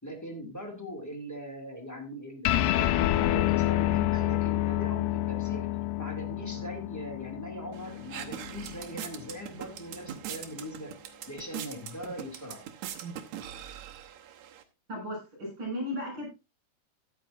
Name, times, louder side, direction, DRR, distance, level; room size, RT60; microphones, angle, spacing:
voice 1, 0.0-5.7 6.0-11.0 11.3-12.6, left 1 dB, 5° left, 3 dB, 1.6 m, -40 dB
sound 1, 2.4-9.2, left 14 dB, 90° left, 2.7 m, -28 dB
sound 2, 7.7-14.6, right 10 dB, 70° right, 1.9 m, -42 dB
voice 2, 14.9-16.3, equal, 30° right, 1 dB, 7.8 m, -35 dB
14.0 x 10.0 x 2.6 m, 0.26 s
omnidirectional pair, 4.5 m